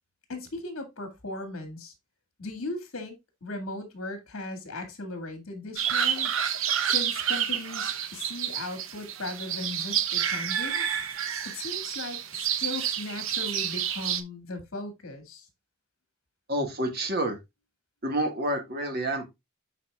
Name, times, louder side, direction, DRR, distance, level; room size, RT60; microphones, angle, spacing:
voice 1, 0.3-1.9 2.4-6.3 6.8-10.9 11.5-15.5, left 2 dB, 70° left, 2.1 m, -37 dB
sound 1, 5.8-14.2, right 9 dB, 70° right, 0.8 m, -29 dB
voice 2, 16.5-17.4 18.0-19.3, right 1 dB, 45° right, 1.7 m, -28 dB
12.0 x 4.2 x 2.3 m
head